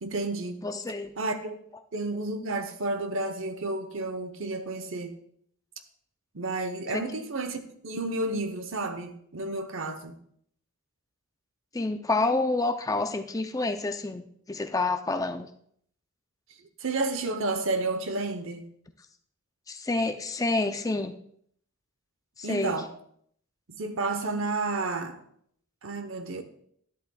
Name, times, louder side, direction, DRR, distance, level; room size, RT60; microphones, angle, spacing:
voice 1, 0.0-0.6 1.2-1.6 1.9-5.2 6.3-10.2 16.8-18.7 22.4-22.9 23.7-25.2 25.8-26.4, right 2 dB, 60° right, 0.9 m, -31 dB
voice 2, 0.6-1.1 6.9-7.0 11.7-15.5 19.7-21.1 22.4-22.8, left 2 dB, 15° left, 0.4 m, -28 dB
11.5 x 10.5 x 2.3 m
head